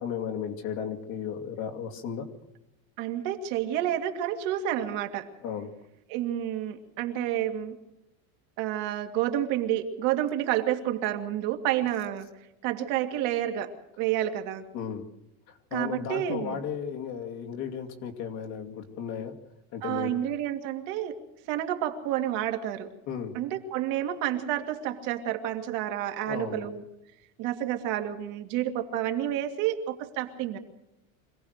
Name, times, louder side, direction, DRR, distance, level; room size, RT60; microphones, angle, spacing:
voice 1, 0.0-2.3 5.4-5.7 14.7-15.1 15.5-19.3 19.7-20.2 23.1-23.3 26.3-26.7, left 7 dB, 40° left, 3 dB, 2.4 m, -35 dB
voice 2, 3.0-5.3 6.1-7.8 8.6-12.3 12.6-14.7 15.7-16.6 19.8-21.2 21.5-22.9 23.3-26.8 27.4-30.6, right 11 dB, 45° right, 5 dB, 2.3 m, -29 dB
26.0 x 17.5 x 6.6 m, 0.91 s
cardioid pair, 180°, 43 cm